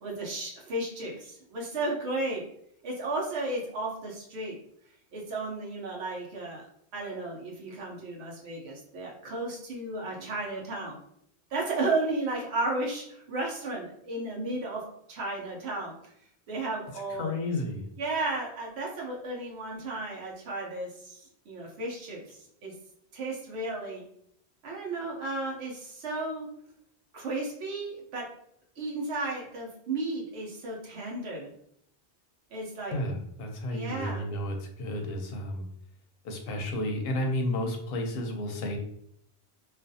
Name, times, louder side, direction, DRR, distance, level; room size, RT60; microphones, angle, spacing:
voice 1, 0.0-2.4 2.8-4.6 5.1-6.7 6.9-11.0 11.5-15.9 16.5-17.3 18.0-22.7 23.1-24.0 24.6-26.5 27.1-28.3 28.8-31.5 32.5-33.0 33.7-34.3, right 2 dB, 75° right, -2 dB, 1.0 m, -34 dB
voice 2, 17.2-17.9 32.9-35.6 36.2-38.8, left 1 dB, 65° left, 2 dB, 0.7 m, -32 dB
2.4 x 2.3 x 2.6 m, 0.70 s
omnidirectional pair, 1.1 m